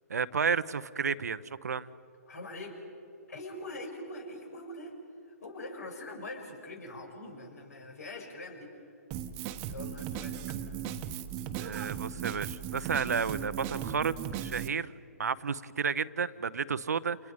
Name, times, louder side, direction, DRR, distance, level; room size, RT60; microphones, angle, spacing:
voice 1, 0.1-1.9 11.6-14.9 15.2-17.2, right 6 dB, 70° right, 14 dB, 1.0 m, -32 dB
voice 2, 2.3-2.8 3.3-5.0 5.3-8.7 9.7-10.6, left 1 dB, 70° left, 2 dB, 7.1 m, -43 dB
Drum kit, 9.1-14.7, right 9 dB, 30° right, 1.3 m, -37 dB
30.0 x 29.5 x 5.2 m, 2.5 s
figure-of-eight pair, 130°, 9 cm